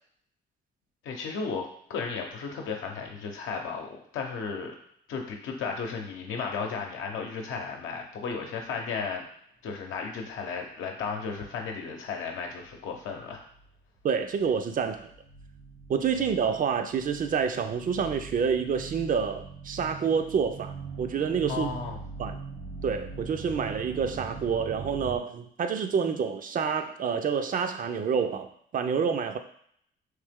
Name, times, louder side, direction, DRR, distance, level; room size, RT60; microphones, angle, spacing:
voice 1, 1.0-4.8 5.1-9.2 9.6-13.4 21.5-22.0, left 5 dB, 80° left, 2 dB, 0.8 m, -34 dB
sound 1, 12.6-12.7 13.1-14.0 14.3-25.2, right 4 dB, 80° right, 0.9 m, -42 dB
voice 2, 14.0-15.1 15.9-21.7 22.2-22.4 22.8-29.4, right 6 dB, 45° right, 7 dB, 0.4 m, -28 dB
3.2 x 2.9 x 3.5 m, 0.66 s
cardioid pair, 90°, 20 cm